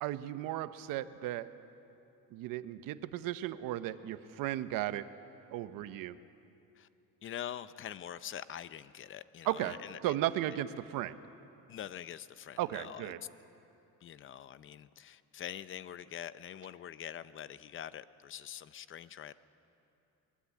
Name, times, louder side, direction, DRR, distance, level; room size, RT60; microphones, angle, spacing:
voice 1, 0.0-1.5 2.3-5.1 5.5-6.2 9.5-9.8 10.0-11.2 12.6-13.2, right 13 dB, 80° right, 12 dB, 1.0 m, -35 dB
voice 2, 7.2-10.2 11.7-13.1 14.0-19.3, left 10 dB, 40° left, 15 dB, 0.6 m, -44 dB
23.5 x 21.5 x 8.4 m, 2.8 s
cardioid pair, 150°, 33 cm